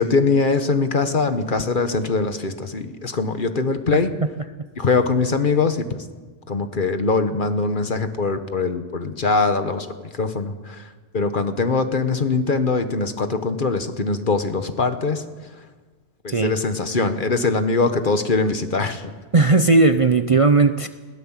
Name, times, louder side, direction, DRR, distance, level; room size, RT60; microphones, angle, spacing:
voice 1, 0.0-4.1 4.8-6.0 6.5-15.5 16.2-19.1, left 4 dB, 45° left, 9 dB, 1.4 m, -22 dB
voice 2, 16.3-16.6 19.3-20.9, right 3 dB, 35° right, 8 dB, 0.6 m, -16 dB
21.0 x 17.0 x 7.4 m, 1.4 s
omnidirectional pair, 1.2 m